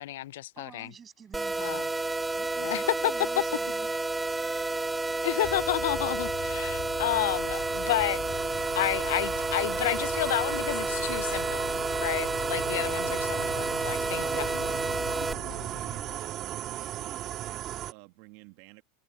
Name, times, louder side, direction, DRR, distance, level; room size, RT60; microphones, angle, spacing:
voice 1, 0.0-0.9 1.6-1.8 2.6-3.1 5.2-8.2 8.8-11.7 12.0-14.6, left 15 dB, 80° left, 0.3 m, -31 dB
voice 2, 0.6-1.8 2.4-4.0, right 7 dB, 25° right, 6.7 m, -50 dB
sound 1, 1.3-15.3, right 2 dB, 10° right, 1.0 m, -31 dB
sound 2, 4.4-17.9, right 12 dB, 40° right, 1.6 m, -37 dB
sound 3, 5.4-16.2, left 14 dB, 45° left, 1.8 m, -43 dB
voice 3, 14.1-18.8, right 24 dB, 65° right, 1.8 m, -48 dB
supercardioid pair, 115°, 0 cm